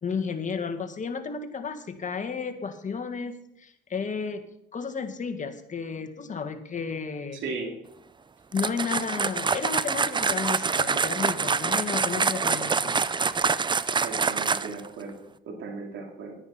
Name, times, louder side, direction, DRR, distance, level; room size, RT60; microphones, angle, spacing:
voice 1, 0.0-4.4 4.7-7.4 8.5-13.0, left 5 dB, 40° left, 7 dB, 1.6 m, -32 dB
voice 2, 7.4-7.7 14.0-15.1 15.4-16.3, right 4 dB, 75° right, 1 dB, 2.8 m, -36 dB
sound 1, 8.5-14.9, right 5 dB, 25° right, 0.5 m, -26 dB
10.0 x 9.7 x 5.7 m, 0.78 s
cardioid pair, 90°, 20 cm